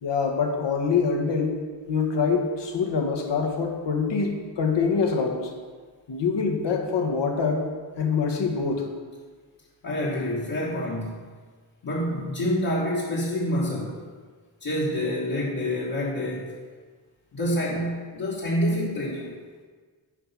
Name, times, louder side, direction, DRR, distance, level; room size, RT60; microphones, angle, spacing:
voice 1, 0.0-1.5 1.9-5.5 6.1-7.7 8.0-8.9, left 5 dB, 70° left, 3 dB, 1.3 m, -25 dB
voice 2, 9.8-11.1 11.8-14.0 14.6-16.5 17.3-19.3, left 1 dB, 50° left, -7 dB, 1.5 m, -27 dB
9.9 x 4.7 x 5.6 m, 1.5 s
wide cardioid pair, 140°, 44 cm